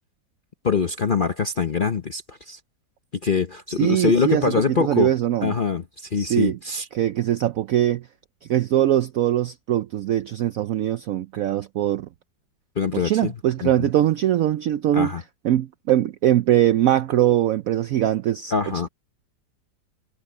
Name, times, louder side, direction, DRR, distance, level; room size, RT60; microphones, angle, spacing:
voice 1, 0.6-2.6 3.2-5.1 5.4-6.9 12.8-13.3 13.6-13.9 14.9-15.2 18.5-18.9, left 5 dB, 45° left, 0.6 m, -24 dB
voice 2, 3.7-5.5 6.2-6.6 6.9-8.1 8.5-12.1 12.9-15.1 15.4-18.5, right 12 dB, 75° right, 0.8 m, -21 dB
omnidirectional pair, 2.0 m